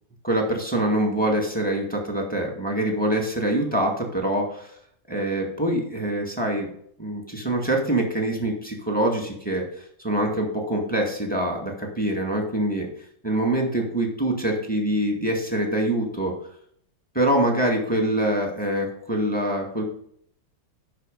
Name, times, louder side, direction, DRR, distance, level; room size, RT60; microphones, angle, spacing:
voice 1, 0.2-4.7 5.1-6.7 7.0-12.9 13.2-16.3 17.1-19.8, right 1 dB, 5° left, 1 dB, 1.8 m, -24 dB
11.0 x 4.9 x 5.3 m, 0.66 s
omnidirectional pair, 2.2 m